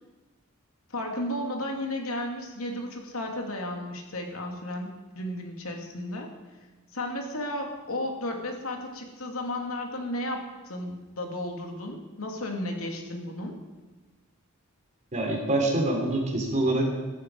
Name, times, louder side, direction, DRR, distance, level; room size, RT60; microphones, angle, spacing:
voice 1, 0.9-6.3 6.9-13.6, left 1 dB, 85° left, 2 dB, 2.7 m, -33 dB
voice 2, 15.1-16.9, right 1 dB, 35° right, 1 dB, 3.4 m, -25 dB
15.5 x 14.5 x 4.8 m, 1.2 s
head